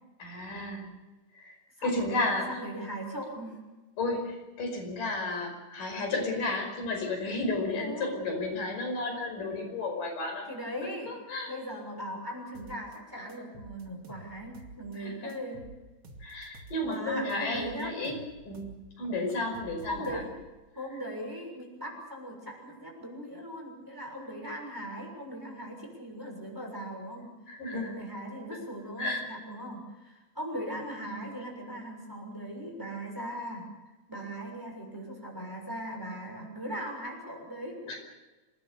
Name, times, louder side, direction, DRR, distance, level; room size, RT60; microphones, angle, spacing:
voice 1, 0.2-0.9 1.3-1.5 1.8-2.6 4.0-10.5 10.8-11.5 15.0-15.3 16.2-18.2 18.4-20.2 27.5-27.9 29.0-29.2 37.9-38.0, left 2 dB, 90° left, 2 dB, 7.0 m, -33 dB
voice 2, 1.8-3.6 7.7-8.1 10.5-11.1 11.5-15.7 16.8-17.9 19.9-20.3 20.7-27.3 27.7-33.7 34.1-38.0, equal, 5° right, 1 dB, 6.3 m, -39 dB
sound 1, 12.5-13.0 13.3-15.0 15.3-17.0 17.3-18.8 19.0-20.6, right 2 dB, 40° right, 3.0 m, -49 dB
27.0 x 19.5 x 7.1 m, 1.2 s
omnidirectional pair, 3.7 m